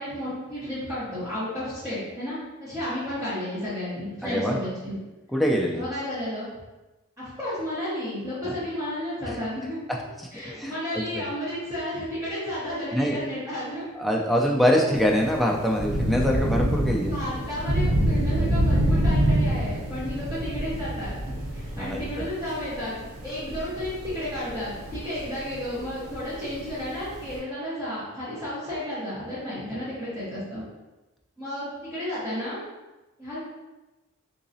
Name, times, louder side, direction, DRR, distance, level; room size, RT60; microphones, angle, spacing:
voice 1, 0.0-4.9 5.7-6.5 7.2-9.8 10.3-13.9 17.0-30.6 31.4-32.6 33.2-33.4, left 1 dB, 15° right, -13 dB, 1.2 m, -32 dB
voice 2, 4.2-4.6 5.3-5.8 10.6-11.1 12.9-13.2 14.0-17.1 21.8-22.3, equal, ahead, -2 dB, 0.4 m, -24 dB
Thunder / Rain, 14.9-27.4, right 1 dB, 85° right, 0.7 m, -27 dB
3.9 x 2.8 x 2.7 m, 1.1 s
head